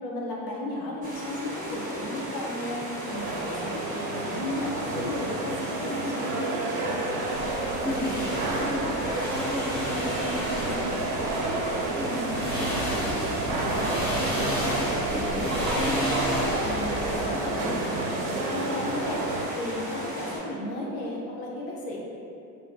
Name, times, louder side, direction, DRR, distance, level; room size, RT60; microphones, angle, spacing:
voice 1, 0.0-2.8 3.1-6.7 16.6-19.2 19.5-22.0, left 1 dB, 60° left, -3 dB, 0.7 m, -34 dB
sound 1, 1.0-20.4, equal, 15° right, 0.8 m, -36 dB
sound 2, 3.0-19.5, right 2 dB, 55° right, 0.5 m, -30 dB
sound 3, 7.3-12.0 12.3-17.2, equal, 90° left, 0.9 m, -32 dB
voice 2, 7.8-9.0 9.3-11.7 12.0-16.0, left 1 dB, 5° left, -8 dB, 0.3 m, -35 dB
2.2 x 2.2 x 2.6 m, 2.6 s
hypercardioid pair, 75°, 49 cm